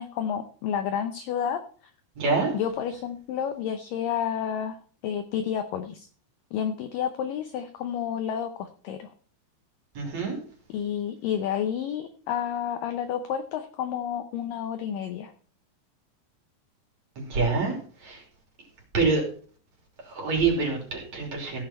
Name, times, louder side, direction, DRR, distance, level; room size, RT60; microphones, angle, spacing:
voice 1, 0.0-1.6 2.5-6.1 6.5-9.1 10.7-15.3, left 9 dB, 85° left, 8 dB, 1.9 m, -30 dB
voice 2, 2.2-2.5 10.0-10.4 17.2-17.8 18.0-18.2 18.9-19.2 20.0-21.6, right 4 dB, 45° right, 1 dB, 3.9 m, -26 dB
16.0 x 7.0 x 4.3 m, 0.42 s
omnidirectional pair, 4.9 m